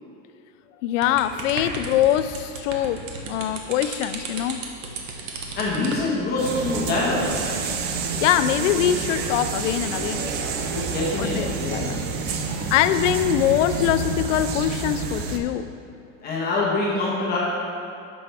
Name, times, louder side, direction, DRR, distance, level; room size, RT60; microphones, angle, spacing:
voice 1, 0.8-4.6 8.2-10.3 11.2-12.0 12.7-15.7, left 11 dB, 85° left, 12 dB, 0.5 m, -23 dB
sound 1, 1.0-6.1, right 3 dB, 90° right, 1.2 m, -34 dB
voice 2, 5.5-7.6 10.7-12.2 16.2-17.4, left 2 dB, 25° left, -6 dB, 1.2 m, -25 dB
sound 2, 6.4-15.4, right 4 dB, 30° right, 0.4 m, -28 dB
9.7 x 6.1 x 3.4 m, 2.6 s
supercardioid pair, 165°, 37 cm